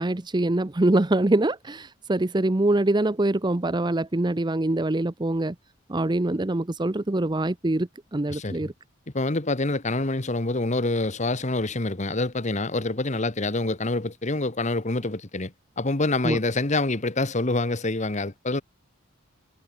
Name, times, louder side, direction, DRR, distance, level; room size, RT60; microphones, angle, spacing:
voice 1, 0.0-5.5 5.9-8.7 16.2-16.4, right 2 dB, 20° right, 0.7 m, -24 dB
voice 2, 9.1-18.6, left 2 dB, 35° left, 1.5 m, -26 dB
head